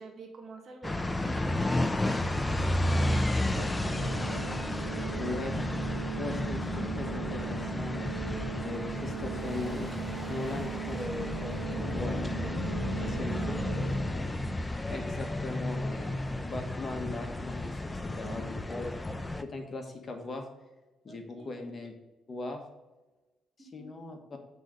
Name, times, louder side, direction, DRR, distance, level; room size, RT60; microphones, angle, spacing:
voice 1, 0.0-5.3 10.8-11.3 11.6-12.2 12.7-14.3 21.1-21.7 23.6-24.0, right 4 dB, 50° right, 3 dB, 1.5 m, -50 dB
sound 1, 0.8-19.4, left 1 dB, 15° left, 0.6 m, -32 dB
Organ, 3.5-14.4, right 13 dB, 80° right, 0.4 m, -40 dB
sound 2, 4.8-14.5, right 1 dB, 10° right, 1.7 m, -53 dB
voice 2, 5.1-5.5 6.2-8.2 8.6-10.0 10.3-11.3 11.9-12.2 13.0-13.3 14.9-17.7 18.1-18.9 19.4-20.5 21.0-21.9 22.3-22.6 23.7-24.2, left 3 dB, 40° left, 4 dB, 1.4 m, -39 dB
8.1 x 3.9 x 5.1 m, 1.1 s
cardioid pair, 90°, 0 cm